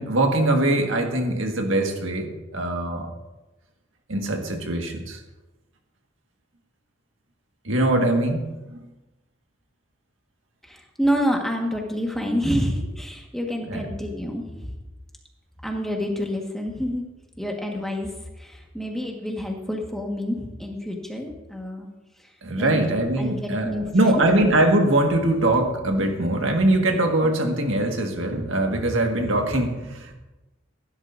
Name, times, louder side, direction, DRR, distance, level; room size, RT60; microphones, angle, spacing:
voice 1, 0.0-3.1 4.1-5.2 7.7-8.8 13.7-13.9 22.4-30.1, right 1 dB, 85° right, 2 dB, 1.8 m, -22 dB
voice 2, 10.6-14.7 15.6-17.1 17.4-18.1 18.4-21.9 22.6-22.8 23.2-24.2, equal, ahead, 0 dB, 1.6 m, -28 dB
16.5 x 11.5 x 2.7 m, 1.1 s
head